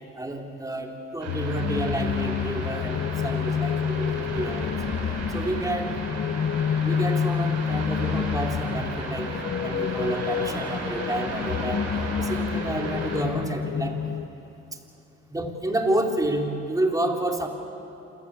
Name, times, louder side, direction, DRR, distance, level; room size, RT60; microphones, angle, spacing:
voice 1, 0.2-5.0 5.3-6.0 6.8-9.3 9.6-11.9 12.2-14.0 15.3-17.5, right 1 dB, 10° right, 1 dB, 3.7 m, -29 dB
sound 1, 1.2-13.2, right 2 dB, 60° right, 7.3 m, -35 dB
sound 2, 1.3-11.5, left 19 dB, 75° left, 0.6 m, -38 dB
sound 3, 1.5-14.3, left 7 dB, 40° left, 0.8 m, -29 dB
27.5 x 16.5 x 8.5 m, 2.8 s
supercardioid pair, 65°, 30 cm